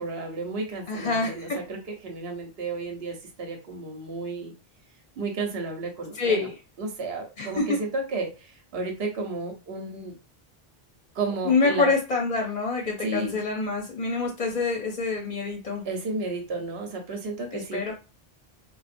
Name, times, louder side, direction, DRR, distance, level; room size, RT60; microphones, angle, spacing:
voice 1, 0.0-4.5 5.2-6.5 6.8-10.2 11.1-11.9 13.0-13.4 15.8-17.9, right 3 dB, 75° right, 2 dB, 1.0 m, -32 dB
voice 2, 0.9-1.6 6.1-6.5 7.4-7.8 11.4-15.8 17.5-17.9, left 4 dB, 50° left, 1 dB, 0.6 m, -26 dB
3.9 x 2.1 x 2.5 m, 0.30 s
omnidirectional pair, 1.0 m